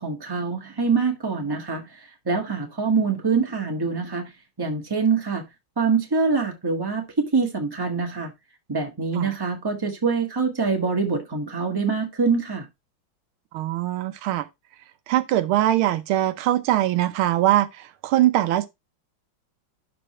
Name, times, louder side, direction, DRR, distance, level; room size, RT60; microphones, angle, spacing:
voice 1, 0.0-1.8 2.2-4.2 4.6-5.4 5.8-8.3 8.7-12.6, right 4 dB, 10° right, 1.4 m, -24 dB
voice 2, 13.5-14.5 15.1-18.7, right 13 dB, 85° right, 1.6 m, -22 dB
11.0 x 4.4 x 3.2 m
omnidirectional pair, 2.2 m